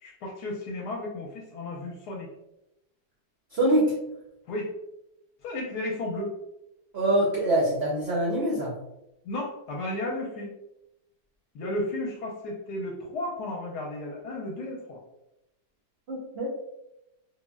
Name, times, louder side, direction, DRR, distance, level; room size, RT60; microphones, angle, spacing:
voice 1, 0.0-2.3 4.5-4.7 5.4-6.4 9.2-10.6 11.5-15.0, left 1 dB, 75° left, -2 dB, 1.1 m, -33 dB
voice 2, 3.5-3.9 6.9-8.7 16.1-16.5, right 1 dB, 70° right, -4 dB, 0.6 m, -24 dB
3.6 x 2.0 x 2.2 m, 0.88 s
omnidirectional pair, 1.8 m